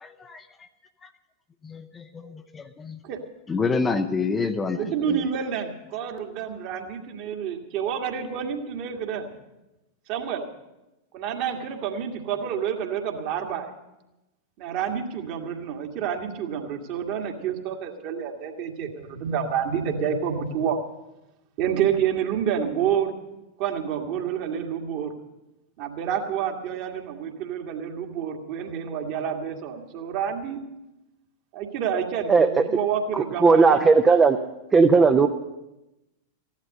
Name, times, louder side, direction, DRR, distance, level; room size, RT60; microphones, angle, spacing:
voice 1, 0.0-0.4 1.6-3.0 3.5-5.2, left 4 dB, 15° left, 8 dB, 0.7 m, -28 dB
voice 2, 4.8-9.3 10.1-10.5 11.1-13.7 14.6-20.8 21.6-23.2 23.6-25.1 25.8-30.6 31.5-33.8, right 8 dB, 45° right, 3 dB, 1.8 m, -28 dB
voice 3, 32.3-32.6 33.4-34.4 34.7-35.3, right 4 dB, 15° right, 5 dB, 0.7 m, -16 dB
15.5 x 11.5 x 6.6 m, 0.96 s
figure-of-eight pair, 90°, 0 cm